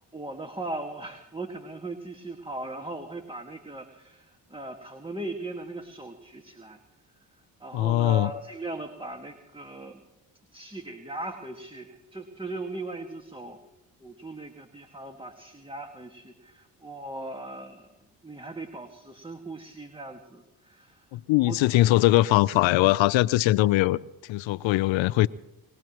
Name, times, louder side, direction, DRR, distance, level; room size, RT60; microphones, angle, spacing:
voice 1, 0.1-6.8 7.6-10.0 10.5-13.6 14.0-17.9 18.2-21.1 21.5-21.6, right 2 dB, 10° right, 4 dB, 1.8 m, -38 dB
voice 2, 7.7-8.3 21.1-25.3, left 16 dB, 75° left, 16 dB, 0.6 m, -21 dB
22.5 x 17.5 x 3.0 m, 0.94 s
supercardioid pair, 55°, 46 cm